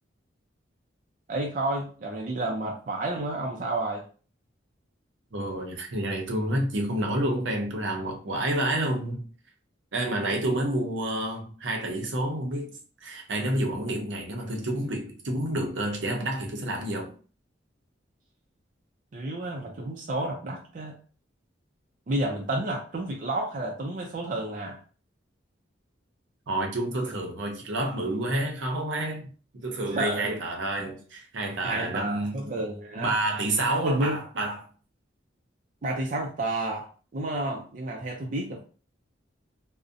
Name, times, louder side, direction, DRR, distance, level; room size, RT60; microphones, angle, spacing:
voice 1, 1.3-4.0 19.1-21.0 22.1-24.8 29.9-30.4 30.8-30.9 31.6-33.1 33.8-34.2 35.8-36.9 37.1-38.6, right 2 dB, 45° right, 0.4 m, -30 dB
voice 2, 5.3-9.3 9.9-17.1 26.5-32.4 33.0-34.7, right 1 dB, 75° right, 0.6 m, -29 dB
2.5 x 2.0 x 2.5 m
head